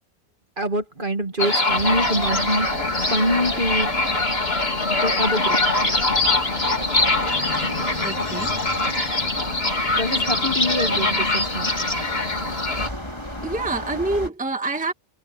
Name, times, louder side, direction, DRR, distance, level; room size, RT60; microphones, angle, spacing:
voice 1, 0.6-3.9 4.9-5.6 9.9-11.7, equal, 35° right, 2.2 m, -25 dB
sound 1, 1.4-12.9, left 2 dB, 45° left, 4.1 m, -23 dB
sound 2, 1.7-14.3, left 1 dB, 20° left, 3.5 m, -35 dB
voice 2, 8.0-8.5 13.4-14.9, right 2 dB, 5° right, 1.6 m, -26 dB
omnidirectional pair, 1.5 m